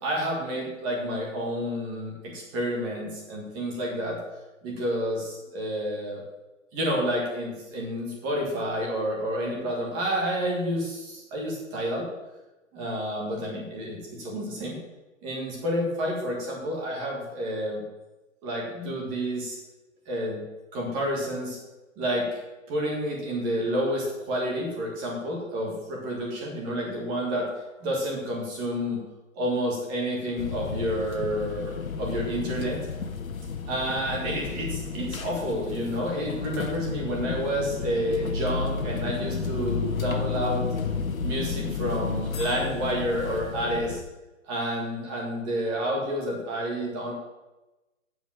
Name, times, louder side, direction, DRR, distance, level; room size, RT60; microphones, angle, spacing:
voice 1, 0.0-4.2 4.6-6.2 6.7-12.1 12.7-14.8 15.2-17.8 18.4-19.6 20.1-20.4 20.7-21.6 22.0-22.3 22.7-27.5 27.8-29.0 29.4-32.8 33.7-40.7 41.2-44.0 44.5-47.1, equal, 10° right, -2 dB, 1.6 m, -29 dB
sound 1, 30.4-44.0, left 5 dB, 90° left, 1.6 m, -32 dB
8.4 x 7.8 x 7.4 m, 1.1 s
hypercardioid pair, 175°, 40 cm